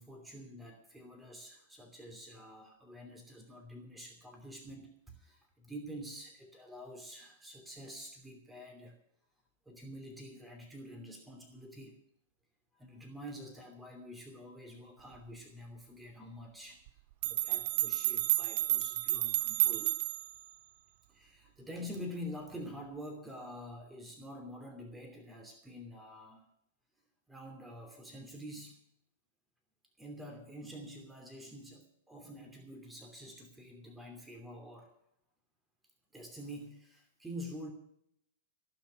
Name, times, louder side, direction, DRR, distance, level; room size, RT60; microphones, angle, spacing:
voice 1, 0.0-9.0 9.7-12.0 12.7-16.8 17.2-20.0 21.1-26.5 27.3-28.8 30.0-34.9 36.1-37.7, equal, 5° right, 2 dB, 2.8 m, -47 dB
sound 1, 16.9-17.0 17.2-20.4, right 16 dB, 55° right, 0.5 m, -31 dB
17.5 x 6.1 x 9.3 m, 0.71 s
hypercardioid pair, 110°, 0 cm